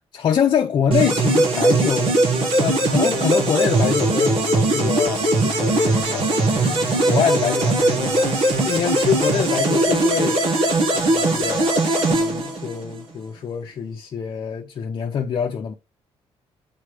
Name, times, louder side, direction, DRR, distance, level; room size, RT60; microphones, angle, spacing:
voice 1, 0.1-2.2 2.6-4.4 4.7-8.3 8.6-10.4 10.9-15.7, left 7 dB, 45° left, 0.8 m, -25 dB
sound 1, 0.9-13.0, right 2 dB, 60° right, 1.9 m, -20 dB
8.3 x 3.3 x 5.0 m
cardioid pair, 150°, 11 cm